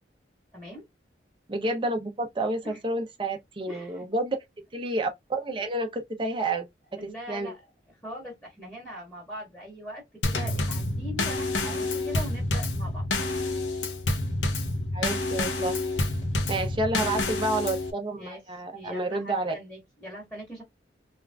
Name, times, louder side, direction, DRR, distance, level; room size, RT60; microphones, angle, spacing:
voice 1, 0.5-0.8 2.6-2.8 3.7-4.0 6.9-13.0 16.4-16.7 18.2-18.4 18.7-20.6, equal, 10° left, 1.4 m, -41 dB
voice 2, 1.5-4.4 4.7-6.7 7.0-7.5 11.7-11.8 14.9-15.8 16.5-19.5, right 2 dB, 25° right, 0.6 m, -30 dB
Drum kit / Snare drum / Bass drum, 10.2-17.9, left 2 dB, 80° left, 0.7 m, -28 dB
3.5 x 2.4 x 2.2 m
head